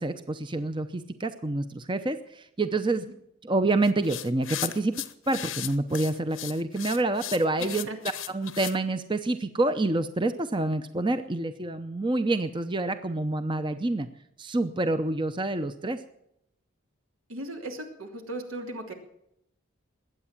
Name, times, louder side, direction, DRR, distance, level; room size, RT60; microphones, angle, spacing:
voice 1, 0.0-3.1 3.4-5.0 5.3-7.9 8.3-14.1 14.4-16.0, right 2 dB, 25° right, 9 dB, 0.7 m, -27 dB
sound 1, 3.8-8.8, left 13 dB, 80° left, 1.0 m, -36 dB
voice 2, 7.6-8.0 17.3-18.9, right 1 dB, 85° right, 4 dB, 2.9 m, -37 dB
21.0 x 8.9 x 7.4 m, 0.76 s
head